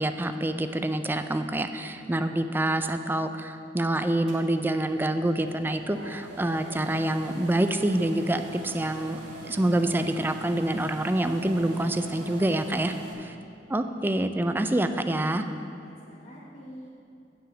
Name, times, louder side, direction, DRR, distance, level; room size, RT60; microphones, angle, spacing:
voice 1, 0.0-13.3 13.7-15.4, right 1 dB, 10° right, 8 dB, 0.3 m, -26 dB
sound 1, 4.3-13.1, right 2 dB, 80° right, 1.6 m, -43 dB
voice 2, 5.7-6.3 15.8-16.9, equal, 45° left, -7 dB, 1.2 m, -47 dB
9.2 x 4.8 x 7.8 m, 2.6 s
head